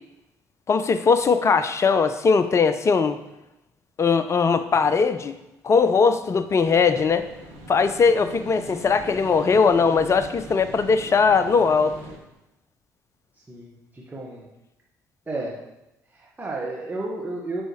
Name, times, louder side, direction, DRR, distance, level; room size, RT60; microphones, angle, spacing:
voice 1, 0.7-3.2 4.0-5.3 5.6-7.3 7.7-12.0, left 5 dB, 35° left, 12 dB, 0.6 m, -20 dB
sound 1, 6.6-12.1, right 1 dB, 70° right, 2.1 m, -42 dB
voice 2, 13.5-14.4 15.3-15.5 16.1-17.6, right 2 dB, 20° right, -4 dB, 1.5 m, -32 dB
9.1 x 5.6 x 3.2 m, 0.94 s
hypercardioid pair, 50°, 9 cm